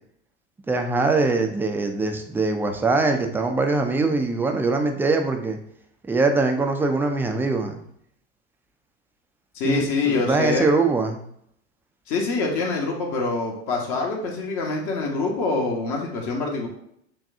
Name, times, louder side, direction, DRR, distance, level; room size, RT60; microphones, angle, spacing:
voice 1, 0.7-5.6 6.1-7.8 9.6-11.2, right 3 dB, 5° right, 4 dB, 0.3 m, -22 dB
voice 2, 9.5-10.7 12.1-16.7, left 3 dB, 50° left, -1 dB, 1.2 m, -25 dB
6.1 x 2.3 x 2.7 m, 0.71 s
hypercardioid pair, 90°, 36 cm